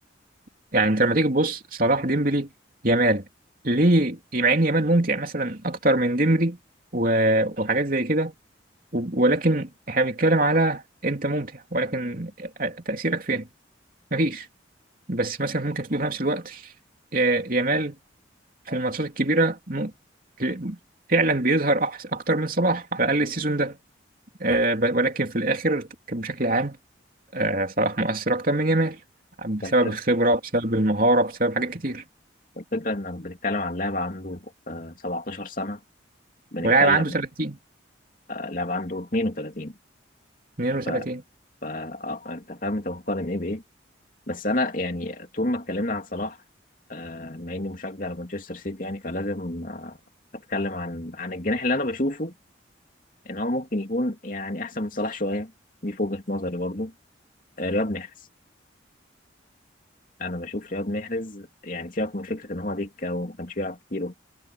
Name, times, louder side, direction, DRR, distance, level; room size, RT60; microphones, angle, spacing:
voice 1, 0.7-2.5 2.8-3.2 3.6-6.6 6.9-8.3 8.9-13.5 14.1-14.5 15.1-16.6 17.1-17.9 18.7-19.9 20.4-20.8 21.1-23.8 24.4-26.8 27.3-29.0 29.4-32.0 36.6-37.6 40.6-41.2, right 2 dB, 45° right, 3.2 m, -23 dB
voice 2, 29.6-29.9 32.6-35.8 36.5-37.2 38.3-39.7 40.9-41.1 41.6-43.6 44.3-46.4 46.9-50.0 50.3-52.3 53.2-55.5 55.8-56.9 57.6-58.1 60.2-64.1, left 1 dB, 45° left, 2.8 m, -29 dB
head